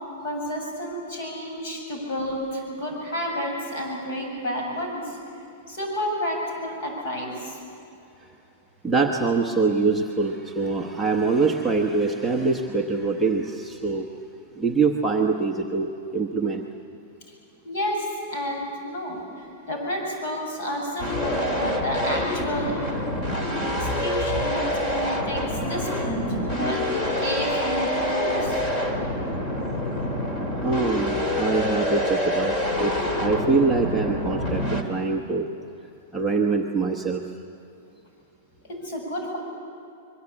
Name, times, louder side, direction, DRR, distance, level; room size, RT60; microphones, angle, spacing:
voice 1, 0.2-5.2 5.7-7.6 17.6-22.8 23.6-25.4 25.7-28.6 38.7-39.4, equal, 50° left, 1 dB, 7.8 m, -30 dB
voice 2, 8.8-14.1 14.5-16.6 30.6-35.5 36.1-37.2, right 4 dB, 5° right, -3 dB, 0.9 m, -24 dB
sound 1, 21.0-34.8, left 1 dB, 20° left, 2.3 m, -26 dB
25.5 x 22.5 x 8.6 m, 2.7 s
supercardioid pair, 180°, 0 cm